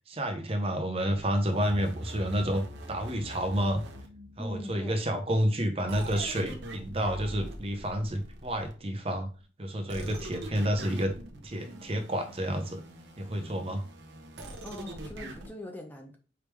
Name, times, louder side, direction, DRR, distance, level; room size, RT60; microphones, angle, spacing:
voice 1, 0.1-3.8 4.4-9.3 9.6-11.1 11.4-12.8 13.2-13.8, equal, 30° right, 6 dB, 0.7 m, -30 dB
sound 1, 1.1-4.8 5.9-9.0 9.9-15.5, right 1 dB, 70° right, 0.8 m, -43 dB
voice 2, 4.4-5.0 14.6-16.2, left 1 dB, 10° left, 2 dB, 0.6 m, -42 dB
4.8 x 3.4 x 3.2 m, 0.37 s
head